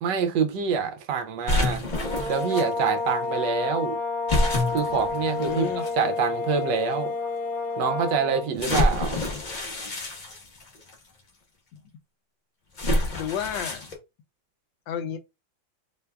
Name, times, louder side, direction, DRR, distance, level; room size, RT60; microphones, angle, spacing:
voice 1, 0.0-1.8 2.3-4.0 4.7-7.1 7.8-9.2, right 6 dB, 75° right, 1.2 m, -26 dB
sound 1, 1.5-2.6 4.3-5.9 6.7-6.8 8.6-10.9 12.8-13.9, left 1 dB, 55° left, 0.5 m, -27 dB
sound 2, 1.9-8.5, left 4 dB, ahead, 0.6 m, -30 dB
voice 2, 5.3-5.8 11.7-11.8 13.2-13.8 14.9-15.2, left 8 dB, 75° left, 1.2 m, -31 dB
3.4 x 3.3 x 2.2 m
omnidirectional pair, 2.1 m